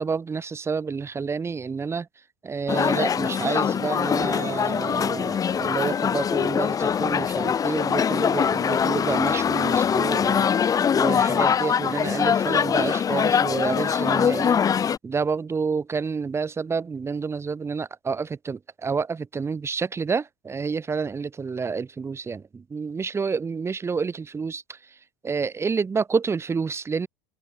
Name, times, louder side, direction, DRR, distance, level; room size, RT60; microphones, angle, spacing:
voice 1, 0.0-2.1 2.4-10.5 10.9-14.6 15.0-24.8 25.2-27.1, right 5 dB, 25° right, 6.8 m, -29 dB
sound 1, 2.7-15.0, left 7 dB, 30° left, 4.1 m, -23 dB
hypercardioid pair, 85°, 11 cm